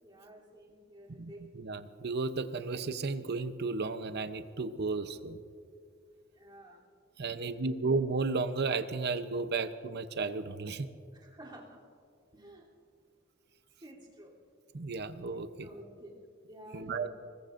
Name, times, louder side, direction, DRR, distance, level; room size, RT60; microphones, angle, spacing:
voice 1, 0.0-1.5 6.3-6.8 7.4-7.8 11.1-11.8 12.3-12.7 13.8-14.3 15.6-17.1, right 1 dB, 25° right, -5 dB, 3.1 m, -51 dB
voice 2, 1.2-5.4 7.2-10.9 14.7-15.7 16.7-17.1, right 4 dB, 55° right, 10 dB, 0.8 m, -33 dB
25.5 x 20.5 x 2.6 m, 2.3 s
head